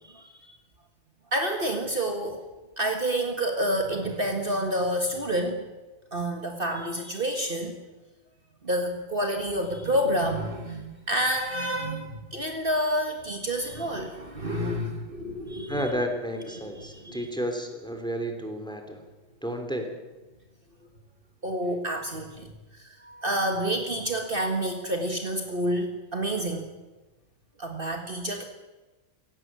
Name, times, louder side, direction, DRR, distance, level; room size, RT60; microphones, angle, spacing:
voice 1, 0.0-0.6 1.3-2.5 2.8-5.6 6.1-7.8 8.6-16.0 16.5-17.2 21.4-26.6 27.6-28.4, right 1 dB, 40° right, 4 dB, 2.0 m, -29 dB
voice 2, 15.7-19.0 19.4-19.9, equal, 5° left, 4 dB, 3.0 m, -31 dB
17.5 x 17.0 x 8.8 m, 1.1 s
omnidirectional pair, 1.4 m